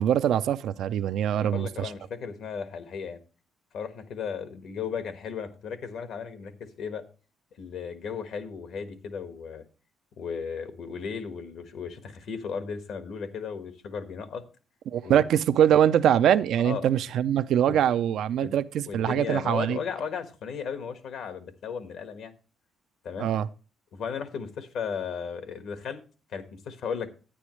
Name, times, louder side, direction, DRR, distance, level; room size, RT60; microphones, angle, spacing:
voice 1, 0.0-1.9 14.9-19.8 23.2-23.5, right 10 dB, 75° right, 0.4 m, -23 dB
voice 2, 1.3-3.2 3.7-7.0 7.6-9.6 10.2-14.4 15.0-15.2 16.6-16.9 17.7-17.8 18.4-18.6 18.9-22.3 23.0-23.3 23.9-26.0 26.3-27.1, left 6 dB, 75° left, 1.4 m, -35 dB
10.0 x 9.6 x 3.1 m
cardioid pair, 90°, 0 cm